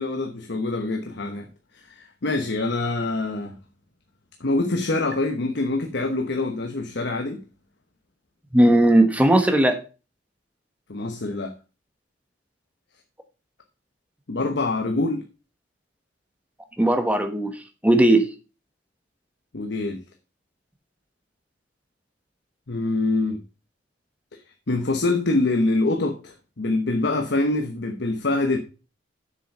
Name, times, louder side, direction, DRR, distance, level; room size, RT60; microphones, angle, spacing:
voice 1, 0.0-1.5 1.7-3.6 4.4-7.4 10.9-11.5 14.3-15.2 19.5-20.0 22.7-23.4 24.7-28.6, left 2 dB, 65° left, 1.0 m, -25 dB
voice 2, 8.5-9.8 16.8-17.5 17.8-18.3, right 1 dB, 10° right, 1.2 m, -17 dB
7.3 x 7.0 x 5.4 m
head